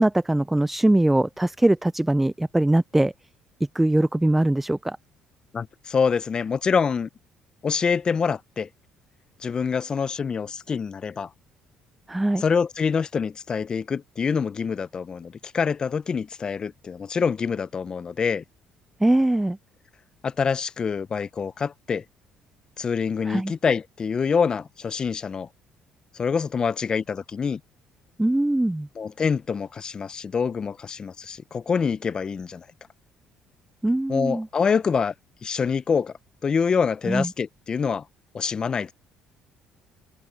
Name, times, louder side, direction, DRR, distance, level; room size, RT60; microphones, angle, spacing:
voice 1, 0.0-3.1 3.7-5.0 12.1-12.4 19.0-19.6 23.3-23.5 28.2-28.9 33.8-34.5 37.1-37.3, right 1 dB, 10° right, 0.4 m, -21 dB
voice 2, 5.5-7.1 7.6-8.7 9.4-11.3 12.4-18.4 20.2-22.0 22.8-25.5 26.1-27.6 29.0-32.7 34.1-35.1 35.4-36.1 36.4-38.0 38.3-38.9, left 6 dB, 35° left, 0.6 m, -26 dB
open air
supercardioid pair, 85°, 2 cm